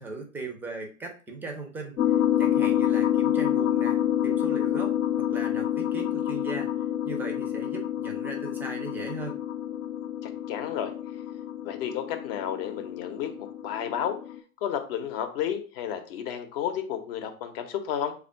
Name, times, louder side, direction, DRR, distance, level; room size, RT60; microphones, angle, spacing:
voice 1, 0.0-4.9 5.2-6.7 7.0-9.4, right 3 dB, 5° right, 2 dB, 0.4 m, -38 dB
sound 1, 2.0-14.4, left 11 dB, 80° left, 0.6 m, -28 dB
voice 2, 10.2-10.9 11.6-14.2 14.6-18.1, left 9 dB, 45° left, 6 dB, 0.7 m, -32 dB
3.4 x 2.4 x 4.3 m, 0.38 s
figure-of-eight pair, 105°, 41 cm